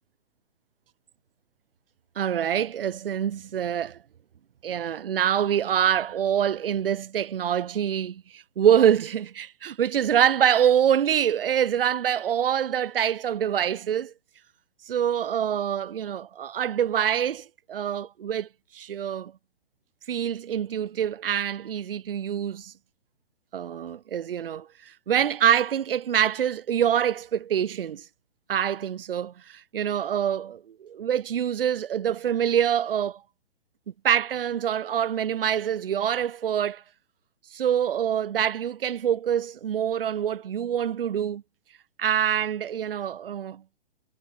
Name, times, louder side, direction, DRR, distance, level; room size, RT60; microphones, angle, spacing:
voice 1, 2.2-4.0 4.6-14.1 14.9-19.3 20.1-22.7 23.5-28.0 28.5-33.2 34.0-36.8 37.5-41.4 42.0-43.6, right 9 dB, 55° right, 0.8 m, -25 dB
hypercardioid pair, 175°, 34 cm